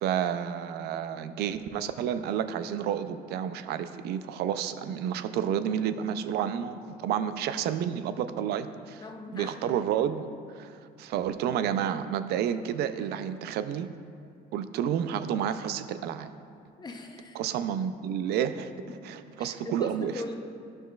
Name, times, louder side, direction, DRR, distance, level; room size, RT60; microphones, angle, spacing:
voice 1, 0.0-9.0 9.3-13.9 14.5-16.3 17.3-18.7 19.0-20.1, right 9 dB, 75° right, 12 dB, 0.4 m, -30 dB
voice 2, 9.0-9.6 16.8-17.4 19.4-20.4, left 3 dB, 25° left, 3 dB, 0.7 m, -40 dB
11.5 x 6.2 x 2.3 m, 2.4 s
cardioid pair, 110°, 17 cm